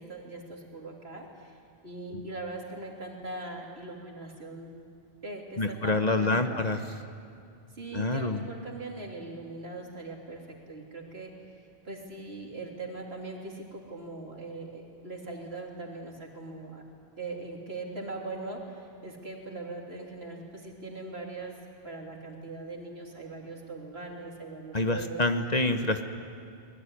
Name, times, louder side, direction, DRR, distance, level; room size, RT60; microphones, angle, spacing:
voice 1, 0.0-1.6 1.8-4.7 5.2-6.7 7.7-11.4 11.8-16.8 17.2-21.6 21.8-25.2, right 3 dB, 70° right, 0 dB, 3.6 m, -40 dB
voice 2, 5.6-6.8 7.9-8.4 24.7-26.0, left 2 dB, 40° left, 7 dB, 1.2 m, -27 dB
23.5 x 20.5 x 9.9 m, 2.4 s
omnidirectional pair, 1.1 m